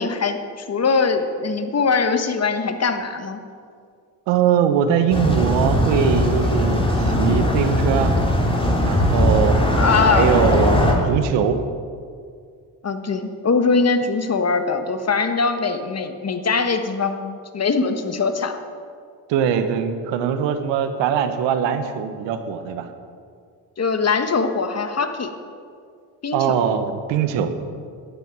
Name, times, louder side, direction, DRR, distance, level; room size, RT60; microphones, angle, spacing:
voice 1, 0.0-3.4 9.8-10.5 12.8-18.6 23.8-25.3 26.2-26.6, left 4 dB, 35° left, 7 dB, 1.4 m, -22 dB
voice 2, 4.3-8.1 8.8-9.6 10.1-11.6 19.3-22.9 26.3-27.5, right 8 dB, 85° right, 9 dB, 1.1 m, -21 dB
sound 1, 5.1-10.9, left 1 dB, 10° left, 3.1 m, -19 dB
12.5 x 10.5 x 6.1 m, 2.2 s
supercardioid pair, 70°, 43 cm